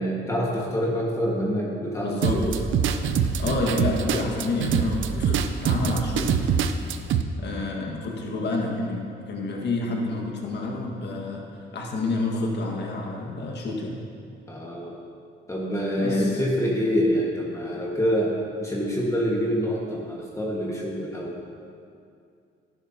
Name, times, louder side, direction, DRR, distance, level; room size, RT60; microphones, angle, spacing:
voice 1, 0.0-2.5 14.5-14.9 15.5-18.3 18.6-21.3, equal, 15° left, -4 dB, 1.7 m, -26 dB
voice 2, 2.0-2.4 3.4-6.5 7.4-11.5 11.7-14.0 16.0-16.4, left 2 dB, 60° left, -1 dB, 1.8 m, -29 dB
sound 1, 2.2-7.2, right 7 dB, 80° right, 0.6 m, -24 dB
13.0 x 10.5 x 2.9 m, 2.4 s
cardioid pair, 90°, 20 cm